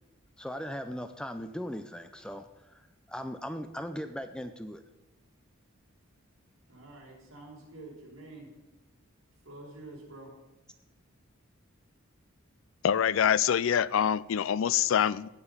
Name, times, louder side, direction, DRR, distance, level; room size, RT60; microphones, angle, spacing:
voice 1, 0.4-4.8, equal, 5° left, 9 dB, 0.5 m, -39 dB
voice 2, 6.7-8.5 9.4-10.3, right 2 dB, 65° right, -3 dB, 4.9 m, -47 dB
voice 3, 12.8-15.3, left 8 dB, 65° left, 20 dB, 0.4 m, -25 dB
17.0 x 6.9 x 5.5 m, 1.0 s
head